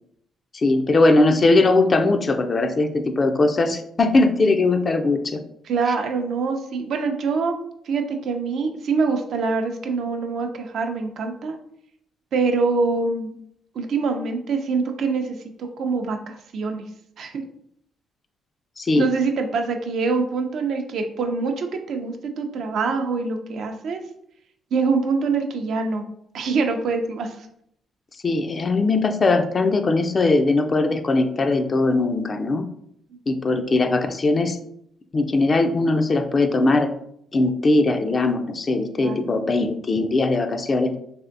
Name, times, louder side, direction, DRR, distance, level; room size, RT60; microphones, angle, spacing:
voice 1, 0.5-5.4 18.8-19.1 28.2-32.7 33.3-34.6 35.1-36.9 37.3-40.9, left 2 dB, 35° left, 8 dB, 0.3 m, -20 dB
voice 2, 5.6-7.6 7.9-11.6 12.3-13.3 13.7-16.8 17.2-17.4 19.0-24.0 24.7-26.0 26.3-27.4 39.0-39.2 39.4-39.5, right 4 dB, 65° right, 5 dB, 0.4 m, -24 dB
3.4 x 2.5 x 2.5 m, 0.71 s
cardioid pair, 90°, 0 cm